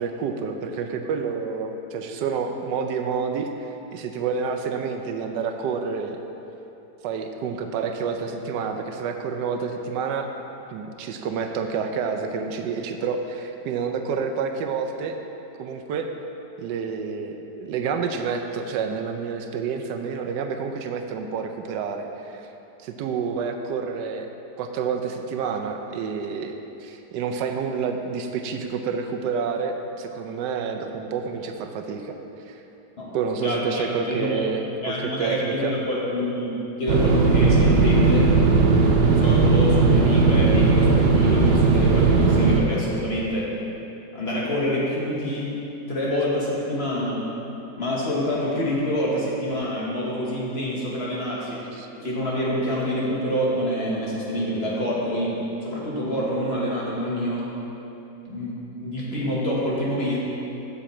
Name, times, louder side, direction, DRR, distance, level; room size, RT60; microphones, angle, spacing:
voice 1, 0.0-6.2 7.0-10.3 10.7-15.2 15.6-16.1 16.6-22.5 22.8-24.3 24.6-26.5 26.8-32.2 32.5-32.6 33.1-35.7 51.7-51.9, right 5 dB, 85° right, 5 dB, 1.2 m, -29 dB
voice 2, 33.4-34.5 34.8-38.3 39.0-43.5 44.1-45.5 45.9-47.2 47.8-51.7 52.0-57.5 58.3-60.2, equal, 40° left, -5 dB, 1.3 m, -26 dB
sound 1, 36.9-42.6, right 4 dB, 55° right, 0.7 m, -17 dB
7.1 x 7.1 x 4.3 m, 2.9 s
omnidirectional pair, 1.8 m